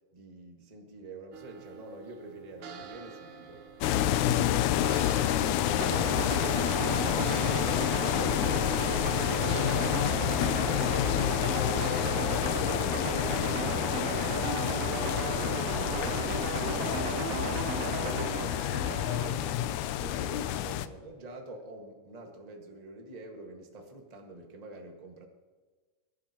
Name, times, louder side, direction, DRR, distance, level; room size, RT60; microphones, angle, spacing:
voice 1, 0.1-3.7 4.4-7.0 7.3-14.3 14.8-25.2, right 2 dB, 25° right, 1 dB, 0.8 m, -47 dB
sound 1, 1.3-20.6, right 7 dB, 60° right, 1.5 m, -49 dB
sound 2, 3.8-20.9, left 12 dB, 80° left, 1.8 m, -28 dB
sound 3, 5.8-19.5, right 8 dB, 80° right, 1.5 m, -35 dB
21.5 x 11.5 x 2.9 m, 1.4 s
omnidirectional pair, 3.7 m